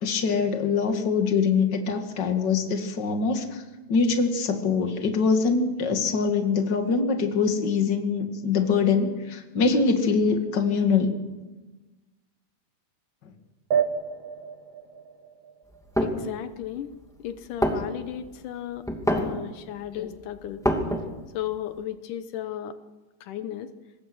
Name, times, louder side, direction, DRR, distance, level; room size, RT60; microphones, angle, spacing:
voice 1, 0.0-3.6 3.9-11.1 19.9-20.1, left 5 dB, 35° left, 5 dB, 2.4 m, -23 dB
sound 1, 13.7-16.7, right 7 dB, 60° right, 2.1 m, -30 dB
sound 2, 15.7-16.2 16.9-17.0 17.4-17.5 17.6-18.3 18.8-19.4 19.8-19.9 20.1-21.3, equal, ahead, 2.0 m, -25 dB
voice 2, 16.0-16.9 17.2-18.9 19.1-20.6 21.3-22.8 23.2-23.7, left 11 dB, 80° left, 10 dB, 2.5 m, -34 dB
25.0 x 21.0 x 6.3 m, 1.2 s
omnidirectional pair, 3.6 m